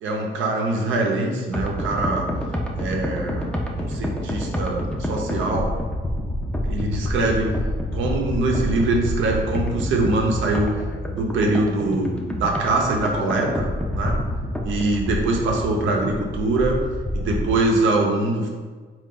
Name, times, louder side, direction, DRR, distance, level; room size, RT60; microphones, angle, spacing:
voice 1, 0.0-2.3 2.8-5.7 6.7-7.5 7.9-10.8 11.1-13.7 13.9-14.1 14.6-16.8 17.1-18.5, right 2 dB, 75° right, 0 dB, 0.7 m, -23 dB
sound 1, 1.5-17.6, equal, 5° left, 0.5 m, -28 dB
3.7 x 2.5 x 3.8 m, 1.5 s
cardioid pair, 90°, 20 cm